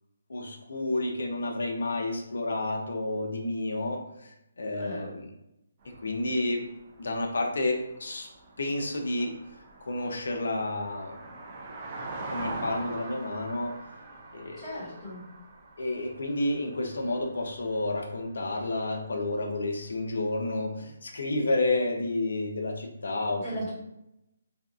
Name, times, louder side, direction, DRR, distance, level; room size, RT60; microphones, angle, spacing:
voice 1, 0.3-5.3 6.0-6.6 7.0-8.3 8.6-9.4 9.8-11.2 12.3-13.7 14.3-14.9 15.8-23.7, left 2 dB, 75° left, 2 dB, 0.5 m, -30 dB
voice 2, 4.8-5.1 14.6-15.2 23.4-23.7, equal, 5° left, -15 dB, 1.2 m, -37 dB
sound 1, 5.8-18.7 19.0-19.2 19.4-19.5, right 2 dB, 25° right, 0.4 m, -43 dB
2.6 x 2.3 x 2.3 m, 0.86 s
hypercardioid pair, 170°, 0 cm